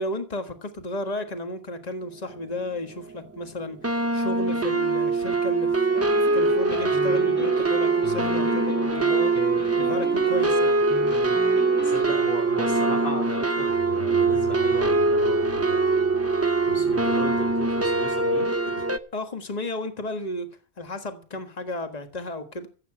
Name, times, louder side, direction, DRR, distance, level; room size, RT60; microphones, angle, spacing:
voice 1, 0.0-5.7 6.1-10.8 16.7-16.9 18.6-18.8 19.1-20.5 20.8-22.7, left 2 dB, 40° left, 1.6 m, -33 dB
sound 1, 2.6-2.7 3.0-3.4 3.8-19.0, right 3 dB, 15° right, 0.7 m, -23 dB
sound 2, 5.9-12.0, left 1 dB, 10° left, 1.2 m, -36 dB
voice 2, 11.8-15.8 16.7-18.5, left 1 dB, 75° left, 3.3 m, -36 dB
Bowed string instrument, 13.7-18.6, left 8 dB, 55° left, 2.8 m, -43 dB
14.5 x 8.1 x 7.4 m
omnidirectional pair, 1.1 m